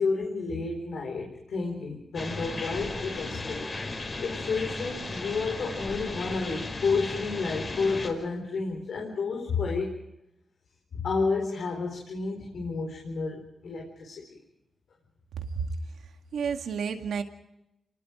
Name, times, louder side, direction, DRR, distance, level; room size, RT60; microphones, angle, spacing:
voice 1, 0.0-3.7 4.2-9.9 10.9-14.4, left 4 dB, 75° left, 1 dB, 4.3 m, -31 dB
sound 1, 2.1-8.1, left 2 dB, 40° left, 4.8 m, -35 dB
voice 2, 15.4-15.7 16.3-17.2, right 6 dB, 85° right, 5 dB, 2.0 m, -31 dB
28.0 x 20.0 x 5.1 m, 0.87 s
cardioid pair, 70°, 0 cm